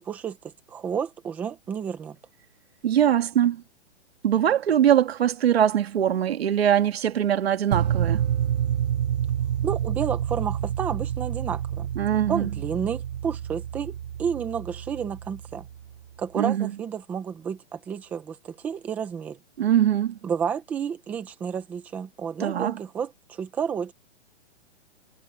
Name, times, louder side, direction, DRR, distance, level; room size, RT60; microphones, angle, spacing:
voice 1, 0.0-2.2 9.6-11.9 12.3-15.7 16.2-19.4 20.2-23.9, right 7 dB, 5° right, 0.7 m, -31 dB
voice 2, 2.8-3.6 4.2-8.2 12.0-12.5 16.4-16.7 19.6-20.2 22.4-22.8, right 10 dB, 55° right, 2.0 m, -22 dB
sound 1, 7.7-15.8, right 9 dB, 35° right, 1.0 m, -28 dB
hypercardioid pair, 170°, 36 cm